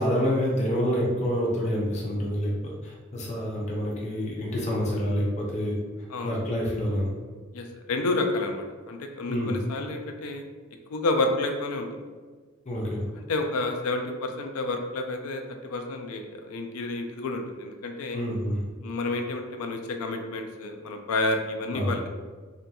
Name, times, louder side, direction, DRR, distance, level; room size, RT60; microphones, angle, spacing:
voice 1, 0.0-5.8 6.2-7.1 9.3-9.6 12.7-13.0 18.1-18.6 21.7-21.9, equal, 35° left, -3 dB, 0.5 m, -27 dB
voice 2, 7.5-10.4 10.9-11.9 13.2-18.2 18.8-22.1, left 2 dB, 90° left, 4 dB, 0.4 m, -30 dB
2.7 x 2.6 x 2.2 m, 1.5 s
head